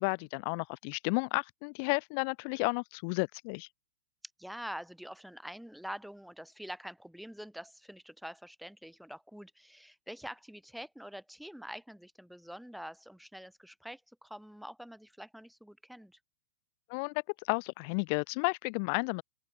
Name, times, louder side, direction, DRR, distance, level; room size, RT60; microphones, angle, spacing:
voice 1, 0.0-3.7 16.9-19.2, left 37 dB, 50° left, 0.7 m, -32 dB
voice 2, 4.4-16.2, equal, ahead, 2.2 m, -46 dB
open air
hypercardioid pair, 105°, 0 cm